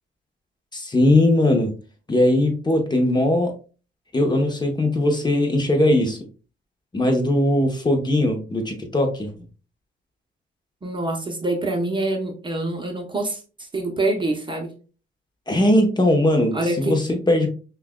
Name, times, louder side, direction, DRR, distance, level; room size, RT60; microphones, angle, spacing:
voice 1, 0.7-1.7 2.1-3.5 4.1-6.2 6.9-9.3 15.5-17.5, left 1 dB, 20° left, 3 dB, 0.9 m, -19 dB
voice 2, 10.8-13.4 13.7-14.7 16.5-17.0, right 2 dB, 25° right, 3 dB, 0.8 m, -25 dB
5.7 x 2.4 x 2.2 m, 0.36 s
cardioid pair, 90°, 20 cm